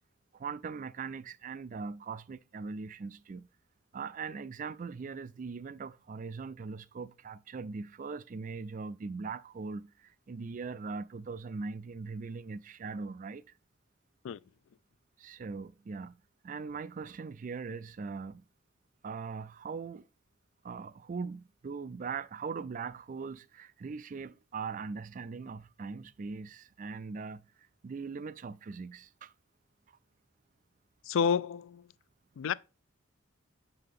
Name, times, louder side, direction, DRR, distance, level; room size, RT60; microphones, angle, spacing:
voice 1, 0.3-3.5 3.9-13.4 15.2-16.2 16.4-18.4 19.0-20.1 20.6-27.4 27.8-29.3 29.9-30.0, right 4 dB, 40° right, 0.3 m, -40 dB
voice 2, 31.0-31.9 32.4-32.5, left 6 dB, 75° left, 0.3 m, -29 dB
6.6 x 5.4 x 3.6 m
head